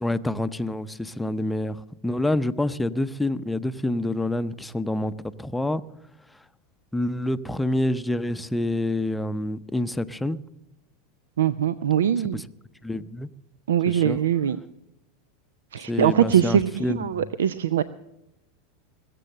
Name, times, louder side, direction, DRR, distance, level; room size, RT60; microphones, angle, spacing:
voice 1, 0.0-5.1 5.4-5.8 6.9-10.4 12.3-12.4 12.8-13.3 13.9-14.2 15.8-17.3, left 1 dB, 5° left, 0.6 m, -27 dB
voice 2, 11.4-12.4 13.7-14.6 15.7-17.8, right 9 dB, 85° right, 0.5 m, -22 dB
21.0 x 7.7 x 6.6 m
hypercardioid pair, 100°, 0 cm